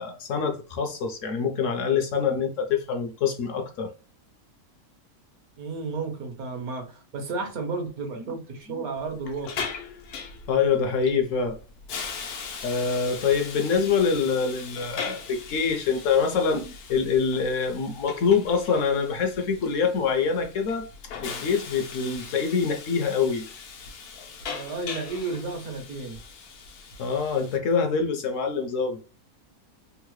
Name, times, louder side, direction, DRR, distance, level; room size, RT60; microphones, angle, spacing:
voice 1, 0.0-3.9 10.5-11.6 12.6-16.6 16.9-20.9 21.2-23.5 27.0-29.0, left 6 dB, 70° left, 0.8 m, -25 dB
voice 2, 5.6-9.7 16.5-16.7 24.5-26.2, right 3 dB, 75° right, 1.4 m, -33 dB
Hiss, 9.0-27.6, left 5 dB, 90° left, 1.2 m, -40 dB
3.6 x 2.0 x 3.0 m
omnidirectional pair, 1.6 m